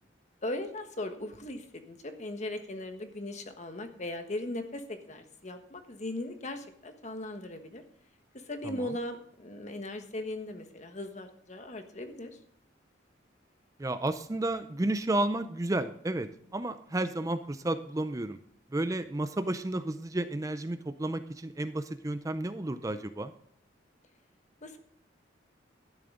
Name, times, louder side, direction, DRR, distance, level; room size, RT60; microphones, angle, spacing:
voice 1, 0.4-7.8 8.3-12.4 24.6-24.8, left 1 dB, 40° left, 7 dB, 1.3 m, -38 dB
voice 2, 13.8-18.4 18.7-23.3, right 1 dB, 20° right, 11 dB, 0.5 m, -32 dB
12.5 x 10.5 x 3.8 m, 0.66 s
head